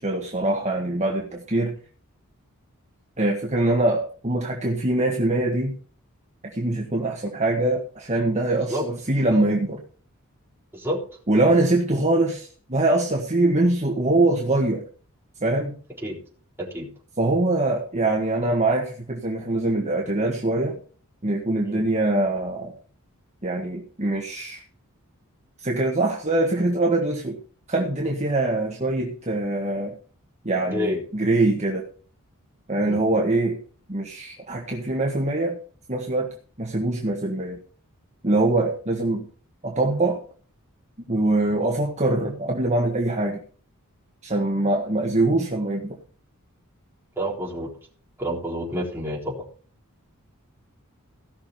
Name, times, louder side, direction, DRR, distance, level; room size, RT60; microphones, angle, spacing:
voice 1, 0.0-1.7 3.2-5.7 6.4-9.8 11.3-14.8 15.4-15.8 17.2-20.8 21.2-22.7 23.4-24.6 25.6-27.4 27.7-29.9 30.4-31.9 32.7-33.6 33.9-35.6 35.9-37.6 38.2-39.3 39.6-40.2 41.1-43.4 44.2-46.0, right 2 dB, 30° right, 0 dB, 1.6 m, -23 dB
voice 2, 30.7-31.0 32.8-33.0 47.2-47.7 48.2-49.5, equal, 10° right, -3 dB, 3.8 m, -28 dB
16.5 x 6.4 x 5.7 m, 0.43 s
head